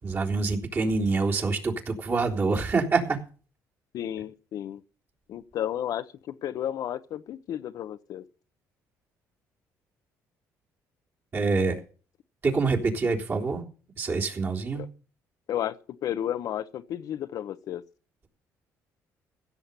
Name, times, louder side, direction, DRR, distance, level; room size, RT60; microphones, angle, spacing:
voice 1, 0.0-3.2 11.3-11.8 12.4-13.6 14.0-14.8, right 4 dB, 40° right, 3.6 m, -26 dB
voice 2, 3.9-4.8 5.3-8.2 14.7-14.9 15.5-17.8, left 11 dB, 65° left, 0.9 m, -32 dB
16.0 x 7.1 x 6.9 m
cardioid pair, 100°, 7 cm